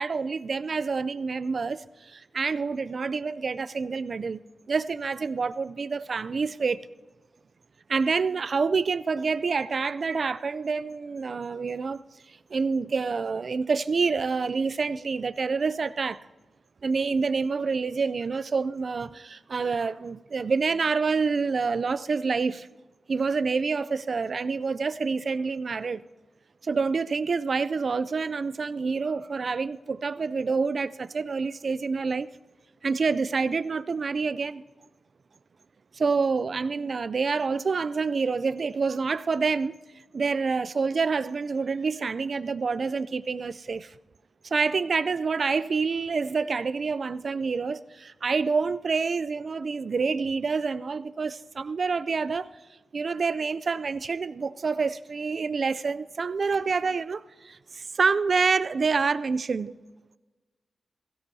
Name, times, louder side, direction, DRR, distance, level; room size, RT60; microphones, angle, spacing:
voice 1, 0.0-6.9 7.9-12.0 12.5-16.2 16.8-22.7 23.1-26.0 26.6-32.3 32.8-34.6 35.9-39.8 40.1-43.9 44.4-52.5 52.9-59.7, right 4 dB, 60° right, 0.4 m, -27 dB
16.5 x 16.0 x 2.8 m
cardioid pair, 60°, 0 cm